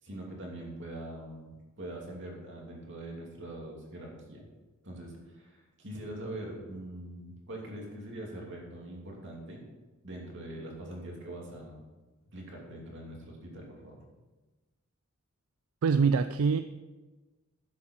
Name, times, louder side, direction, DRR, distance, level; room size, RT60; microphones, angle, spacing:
voice 1, 0.0-4.4 4.8-9.6 10.0-11.8 12.3-14.0, right 1 dB, 60° right, -1 dB, 2.7 m, -43 dB
voice 2, 15.8-16.6, right 5 dB, 80° right, 10 dB, 0.4 m, -24 dB
12.0 x 7.5 x 4.5 m, 1.2 s
head